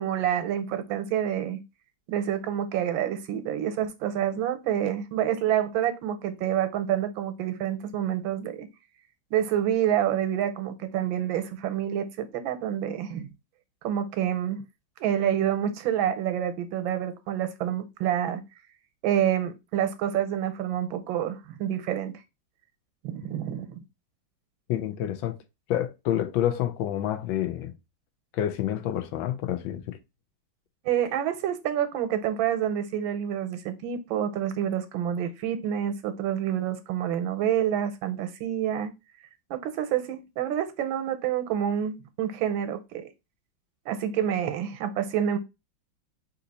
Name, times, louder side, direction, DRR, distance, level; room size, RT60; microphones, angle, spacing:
voice 1, 0.0-1.6 2.1-8.7 9.3-13.3 13.8-14.6 15.0-18.4 19.0-22.1 23.0-23.8 30.8-38.9 39.5-43.1 43.9-45.4, right 10 dB, 85° right, 1.5 m, -28 dB
voice 2, 24.7-25.3 25.7-27.7 28.3-30.0, left 11 dB, 85° left, 1.4 m, -28 dB
4.0 x 2.8 x 4.0 m
omnidirectional pair, 2.1 m